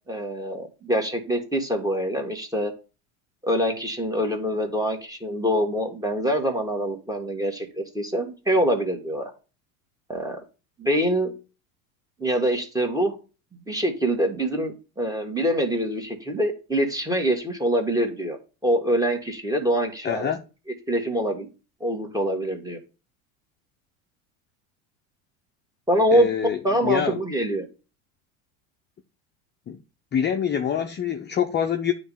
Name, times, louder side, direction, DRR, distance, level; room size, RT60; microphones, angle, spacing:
voice 1, 0.1-2.7 3.4-9.3 10.1-10.4 10.8-11.3 12.2-13.1 13.7-18.4 18.6-20.3 20.9-21.5 21.8-22.8 25.9-26.3 26.6-27.7, equal, 10° right, 1.7 m, -24 dB
voice 2, 20.0-20.4 26.1-27.2 29.7-29.8 30.1-31.9, left 8 dB, 25° left, 0.6 m, -25 dB
9.2 x 3.2 x 5.5 m
supercardioid pair, 100°, 43 cm